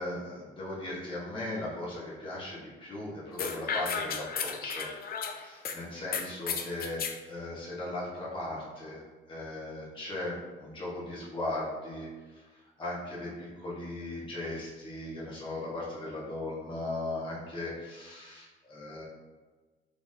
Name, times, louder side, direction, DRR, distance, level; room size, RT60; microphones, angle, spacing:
voice 1, 0.0-4.9 5.2-7.0 7.3-9.0 9.3-12.1 12.8-19.0, left 2 dB, 25° left, -8 dB, 1.3 m, -38 dB
sound 1, 3.4-5.8 6.1-7.2, left 6 dB, 50° left, 0.4 m, -33 dB
3.8 x 3.4 x 2.7 m, 1.3 s
cardioid pair, 90°, 20 cm